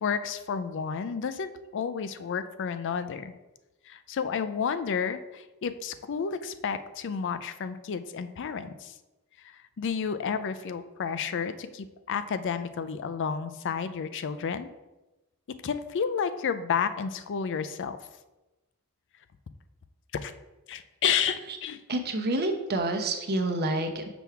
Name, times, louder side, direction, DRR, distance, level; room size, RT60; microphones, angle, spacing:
voice 1, 0.0-3.3 3.9-8.9 9.4-14.7 15.6-18.0 20.1-20.3 20.7-21.8, left 6 dB, 55° left, 12 dB, 0.4 m, -31 dB
voice 2, 21.9-24.1, right 2 dB, 45° right, 5 dB, 0.8 m, -28 dB
6.0 x 3.5 x 5.7 m, 1.1 s
head